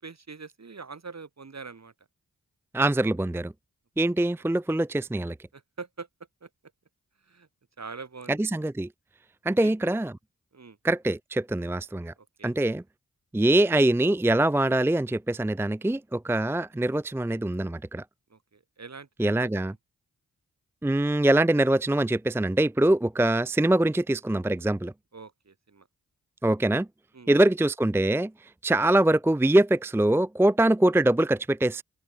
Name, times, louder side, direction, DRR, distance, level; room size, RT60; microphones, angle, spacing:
voice 1, 0.0-2.1 4.0-4.3 5.5-6.1 6.4-6.5 7.2-7.5 7.8-8.5 9.6-9.7 10.5-10.8 12.2-12.6 18.3-19.8 25.1-25.9 27.1-27.3, right 4 dB, 50° right, 6.0 m, -44 dB
voice 2, 2.7-3.5 4.0-5.3 8.4-8.9 9.4-10.1 10.8-12.1 12.4-12.8 13.3-18.0 19.2-19.7 20.8-24.9 26.4-26.9 27.3-28.3 28.6-31.8, right 1 dB, 5° right, 0.6 m, -23 dB
open air
cardioid pair, 50°, 34 cm